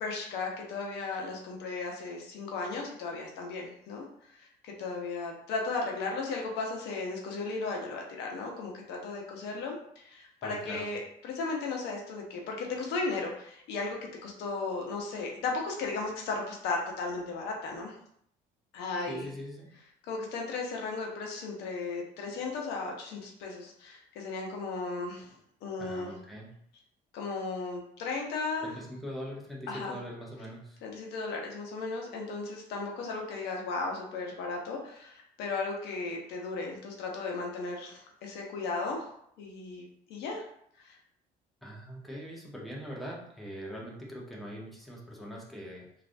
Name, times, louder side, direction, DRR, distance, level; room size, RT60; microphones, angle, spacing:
voice 1, 0.0-17.9 18.7-19.3 20.0-25.4 25.6-26.1 27.1-28.7 29.7-30.0 30.8-39.1 39.4-39.8 40.1-40.4 40.8-41.0, left 3 dB, 90° left, 0 dB, 0.7 m, -35 dB
voice 2, 10.4-10.9 19.1-19.7 25.8-26.5 28.6-30.8 41.6-45.8, equal, ahead, -3 dB, 0.8 m, -42 dB
3.2 x 2.4 x 2.5 m, 0.69 s
cardioid pair, 110°, 17 cm